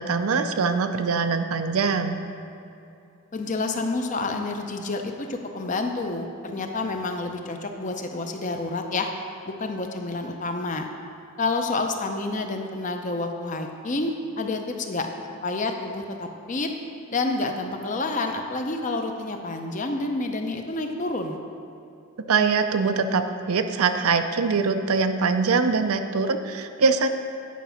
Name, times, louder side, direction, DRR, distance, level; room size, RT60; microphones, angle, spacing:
voice 1, 0.0-2.2 22.3-27.1, right 4 dB, 75° right, 8 dB, 0.5 m, -23 dB
voice 2, 3.3-9.1 9.5-10.9 11.4-15.1 15.4-16.7 17.1-21.4, left 3 dB, 35° left, 4 dB, 0.5 m, -29 dB
9.3 x 5.0 x 5.7 m, 2.7 s
head